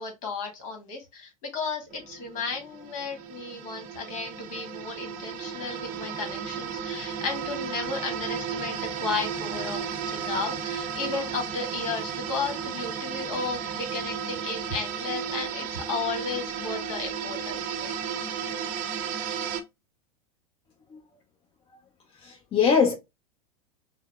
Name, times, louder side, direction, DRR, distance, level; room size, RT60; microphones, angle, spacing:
voice 1, 0.0-17.9, left 4 dB, 60° left, 1.6 m, -34 dB
sound 1, 1.9-19.6, right 7 dB, 45° right, 0.7 m, -34 dB
voice 2, 22.2-22.9, left 6 dB, 30° left, 0.8 m, -22 dB
5.3 x 2.1 x 2.4 m
hypercardioid pair, 100°, 19 cm